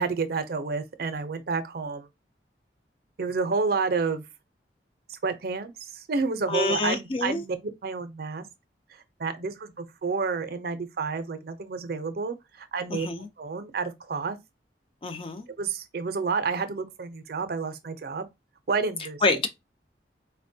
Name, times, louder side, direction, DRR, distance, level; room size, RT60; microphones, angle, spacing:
voice 1, 0.0-2.1 3.2-4.2 5.1-8.5 9.2-13.1 13.4-14.4 15.6-18.3 18.7-19.2, right 4 dB, 60° right, 0.5 m, -30 dB
voice 2, 6.5-7.4 12.9-13.3 15.0-15.5 19.2-19.5, left 3 dB, 30° left, 0.4 m, -26 dB
4.1 x 2.2 x 2.6 m
head